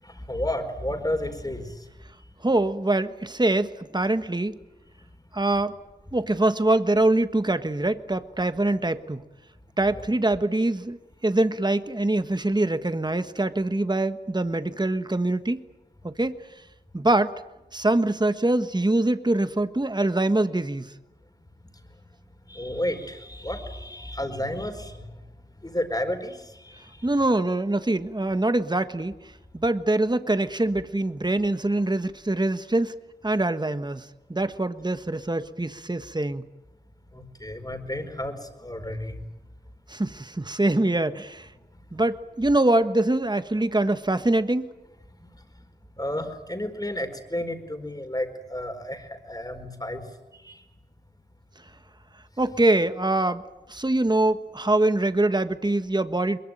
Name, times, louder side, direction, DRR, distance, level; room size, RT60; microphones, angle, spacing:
voice 1, 0.0-1.9 22.5-25.1 25.6-27.1 37.1-39.1 45.2-45.3 46.0-50.0 50.3-50.6, left 1 dB, 20° left, 6 dB, 4.5 m, -32 dB
voice 2, 2.4-4.6 5.3-5.7 6.1-9.2 9.8-15.6 16.0-16.4 16.9-17.3 17.7-20.9 27.0-29.1 29.5-32.9 33.2-36.4 39.9-41.5 41.9-44.7 52.4-53.4 53.7-56.4, right 2 dB, 25° right, 10 dB, 1.3 m, -24 dB
22.0 x 22.0 x 9.1 m, 0.98 s
cardioid pair, 40°, 17 cm